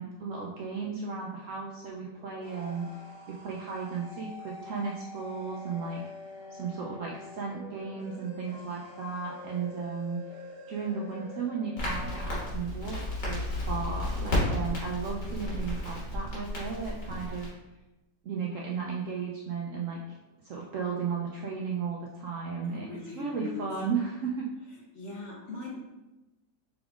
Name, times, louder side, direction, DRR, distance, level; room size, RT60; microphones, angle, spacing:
voice 1, 0.0-2.9 3.3-6.0 6.5-10.2 10.7-17.5 18.2-20.2 20.4-22.9 23.1-24.5, right 5 dB, 70° right, -2 dB, 0.7 m, -35 dB
sound 1, 2.1-12.5, left 2 dB, 45° right, 1.3 m, -46 dB
Crackle, 11.8-17.5, left 1 dB, 85° left, 2.2 m, -32 dB
voice 2, 22.6-23.6 24.9-25.8, left 3 dB, 55° left, -2 dB, 0.9 m, -40 dB
5.9 x 3.5 x 2.4 m, 1.0 s
omnidirectional pair, 1.8 m